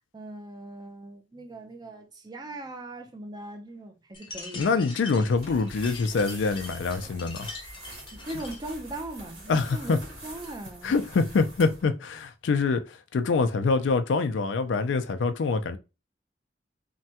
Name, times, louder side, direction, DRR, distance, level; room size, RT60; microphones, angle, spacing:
voice 1, 0.1-4.7 8.1-11.0, right 1 dB, 25° right, 0.5 m, -40 dB
sound 1, 4.1-8.7, left 3 dB, 25° left, 0.6 m, -43 dB
voice 2, 4.5-7.5 9.5-10.0 10.8-15.8, left 4 dB, 85° left, 0.4 m, -25 dB
sound 2, 5.3-11.9, right 1 dB, 55° right, 1.9 m, -45 dB
3.2 x 2.2 x 2.8 m
head